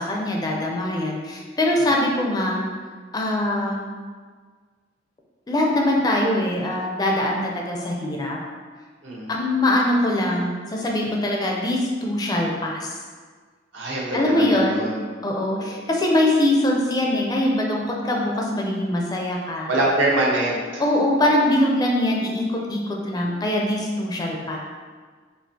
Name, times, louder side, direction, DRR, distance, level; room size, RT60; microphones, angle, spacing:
voice 1, 0.0-2.6 3.1-3.9 5.5-8.4 9.3-13.0 14.1-14.8 15.2-19.7 20.8-24.6, left 1 dB, 20° left, -1 dB, 0.4 m, -22 dB
voice 2, 13.7-15.0 15.6-15.8 19.7-20.8, right 1 dB, 70° right, -4 dB, 0.8 m, -24 dB
4.3 x 2.7 x 2.6 m, 1.5 s
head